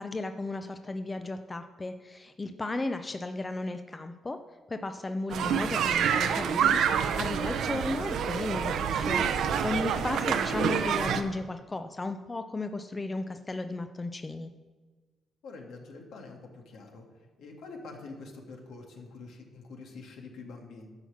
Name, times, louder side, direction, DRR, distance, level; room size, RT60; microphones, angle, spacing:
voice 1, 0.0-4.4 4.7-14.5, left 2 dB, 20° left, 8 dB, 0.5 m, -35 dB
sound 1, 5.3-11.2, right 7 dB, 75° right, 0.7 m, -27 dB
voice 2, 15.4-17.0 17.4-20.9, left 3 dB, 75° left, 1 dB, 2.1 m, -46 dB
10.5 x 5.7 x 7.2 m, 1.3 s
cardioid pair, 90°, 0 cm